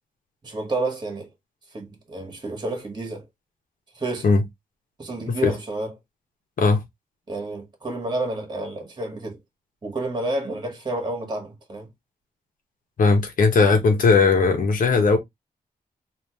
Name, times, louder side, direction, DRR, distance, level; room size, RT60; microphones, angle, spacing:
voice 1, 0.4-1.3 1.7-3.2 3.9-4.3 5.0-5.9 7.3-9.4 9.8-11.9, right 2 dB, 30° right, 1.6 m, -30 dB
voice 2, 13.0-15.2, left 4 dB, 65° left, 1.2 m, -18 dB
3.4 x 2.8 x 2.9 m
cardioid pair, 95°, 15 cm